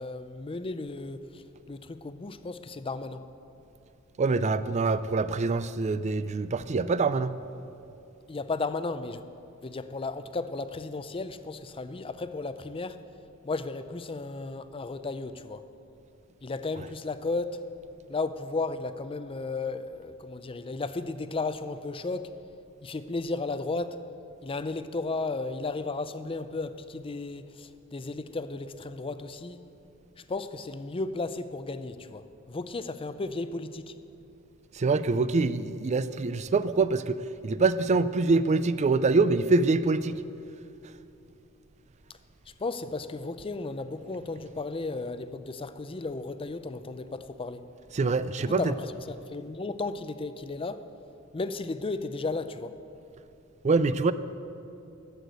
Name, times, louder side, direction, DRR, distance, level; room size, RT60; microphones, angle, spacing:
voice 1, 0.0-1.4 1.7-3.3 8.3-9.2 9.6-13.0 13.4-15.7 16.4-17.6 18.1-22.3 22.8-24.0 24.4-29.6 30.3-33.9 42.6-47.6 48.4-50.8 51.3-52.7, left 3 dB, 25° left, 0.5 m, -34 dB
voice 2, 4.2-7.3 34.8-40.2 47.9-48.7 53.6-54.1, right 3 dB, 35° right, 0.4 m, -25 dB
12.0 x 8.1 x 8.0 m
head